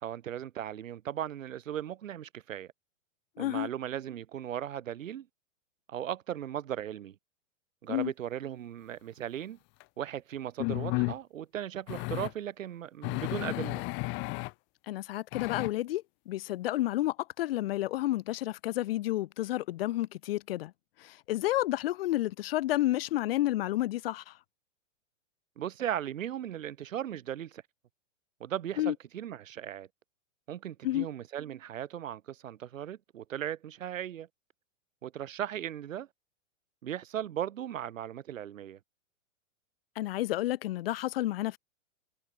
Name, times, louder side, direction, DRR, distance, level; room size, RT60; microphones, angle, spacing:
voice 1, 0.0-2.7 3.4-5.3 5.9-7.2 7.8-9.6 10.0-13.8 25.6-27.6 28.4-29.9 30.5-34.3 35.0-36.1 36.8-38.8, right 10 dB, 80° right, 4.4 m, -37 dB
voice 2, 3.4-3.7 7.9-8.1 14.9-20.7 21.0-24.3 28.8-28.9 30.8-31.1 39.9-41.6, left 15 dB, 45° left, 5.0 m, -30 dB
sound 1, 9.8-9.9 10.6-11.2 11.9-12.3 13.0-14.5 15.3-15.7, left 30 dB, 30° left, 7.5 m, -33 dB
supercardioid pair, 175°, 39 cm